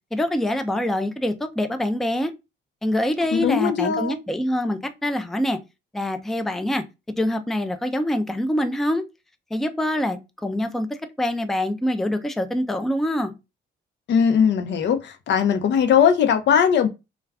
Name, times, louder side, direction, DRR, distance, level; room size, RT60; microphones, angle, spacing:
voice 1, 0.1-2.3 2.8-5.6 5.9-9.0 9.5-13.3, left 1 dB, ahead, 0.4 m, -25 dB
voice 2, 3.3-4.2 14.1-16.9, left 7 dB, 65° left, 0.6 m, -19 dB
2.3 x 2.3 x 3.3 m
cardioid pair, 90°, 20 cm